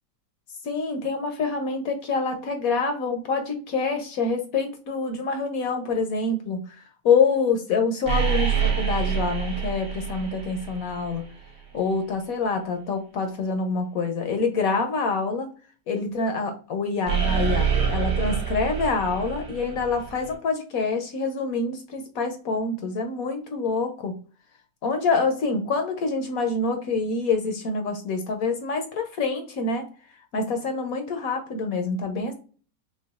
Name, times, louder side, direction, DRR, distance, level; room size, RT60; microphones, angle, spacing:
voice 1, 0.6-6.8 7.0-11.2 11.7-15.5 15.9-24.2 24.8-29.9 30.3-32.3, left 4 dB, 65° left, 5 dB, 1.1 m, -26 dB
sound 1, 8.0-11.3 17.1-20.3, right 8 dB, 70° right, 1.8 m, -26 dB
6.0 x 2.3 x 2.3 m, 0.38 s
omnidirectional pair, 1.8 m